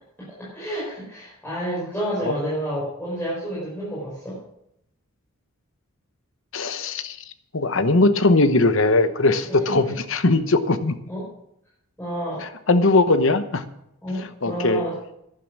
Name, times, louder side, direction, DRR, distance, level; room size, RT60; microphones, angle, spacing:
voice 1, 0.4-4.4 9.4-9.9 11.1-11.3 12.0-12.4 13.1-13.2 14.0-15.0, right 1 dB, 10° left, -9 dB, 5.1 m, -30 dB
voice 2, 6.5-7.2 7.5-9.8 10.1-11.0 12.4-13.6 14.4-14.8, left 2 dB, 60° left, 11 dB, 1.0 m, -19 dB
12.0 x 11.0 x 6.1 m, 0.78 s
head